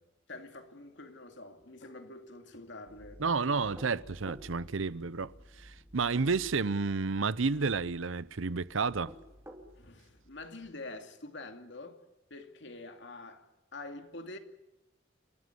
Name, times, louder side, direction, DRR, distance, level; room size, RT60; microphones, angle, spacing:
voice 1, 0.3-3.6 9.7-12.0 12.3-14.4, left 2 dB, 65° left, 2.5 m, -46 dB
sound 1, 2.9-10.7, equal, 15° left, 3.6 m, -56 dB
voice 2, 3.2-5.3 5.6-9.1, right 4 dB, 75° right, 0.7 m, -31 dB
sound 2, 3.6-4.5 6.0-6.7 8.9-9.7, equal, 15° right, 2.8 m, -50 dB
29.0 x 14.0 x 9.6 m
head